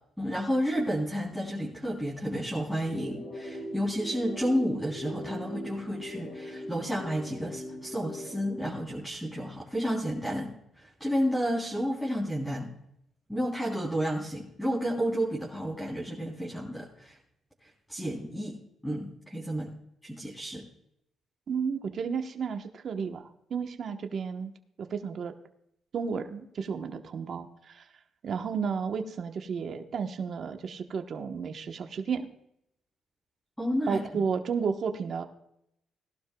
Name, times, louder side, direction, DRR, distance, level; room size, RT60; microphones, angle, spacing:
voice 1, 0.2-12.7 13.3-17.2 17.9-18.6 18.8-19.7 20.0-20.7 33.6-34.2, equal, ahead, -5 dB, 3.4 m, -31 dB
sound 1, 2.8-8.8, equal, 60° left, 2.1 m, -40 dB
voice 2, 21.5-24.5 24.8-25.3 25.9-27.8 28.2-32.3 33.9-35.2, right 6 dB, 55° right, 5 dB, 1.1 m, -32 dB
18.5 x 12.0 x 2.3 m, 0.77 s
cardioid pair, 90°, 0 cm